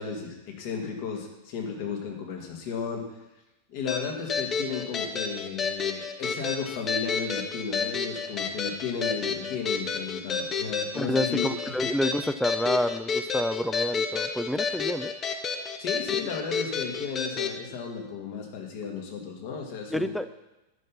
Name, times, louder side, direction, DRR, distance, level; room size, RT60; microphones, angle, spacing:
voice 1, 0.0-3.1 3.7-11.5 15.8-20.1, left 6 dB, 50° left, 1 dB, 1.9 m, -34 dB
sound 1, 3.9-17.6, left 5 dB, 25° left, 0.8 m, -30 dB
voice 2, 10.9-15.1 19.9-20.3, equal, ahead, 12 dB, 0.4 m, -28 dB
10.5 x 5.9 x 5.6 m, 0.97 s
figure-of-eight pair, 90°, 0 cm